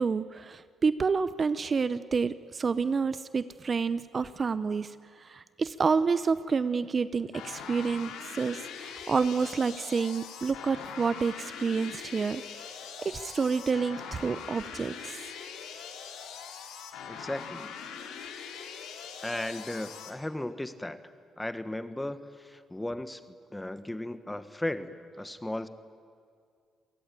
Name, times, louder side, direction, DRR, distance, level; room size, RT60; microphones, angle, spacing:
voice 1, 0.0-12.4 13.0-15.3, right 5 dB, 40° right, 15 dB, 0.7 m, -29 dB
sound 1, 7.3-20.1, left 7 dB, 90° left, 2.8 m, -42 dB
voice 2, 17.1-17.7 19.2-25.7, left 1 dB, 10° left, 12 dB, 1.3 m, -36 dB
27.5 x 19.0 x 9.1 m, 2.3 s
cardioid pair, 90°, 0 cm